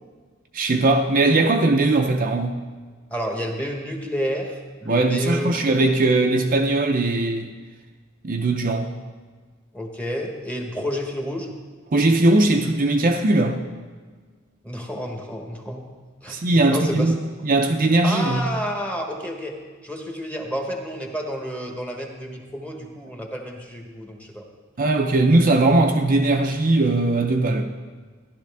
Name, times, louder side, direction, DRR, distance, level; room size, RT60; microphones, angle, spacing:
voice 1, 0.5-2.6 4.9-7.5 8.2-8.9 11.9-13.6 16.3-17.2 17.4-18.4 24.8-27.6, right 2 dB, 45° right, 3 dB, 0.6 m, -19 dB
voice 2, 3.1-5.5 9.7-11.5 14.6-15.9 16.2-16.4 16.7-17.1 18.0-19.5 19.8-24.4, equal, 5° left, 1 dB, 1.2 m, -30 dB
13.5 x 11.5 x 3.5 m, 1.5 s
head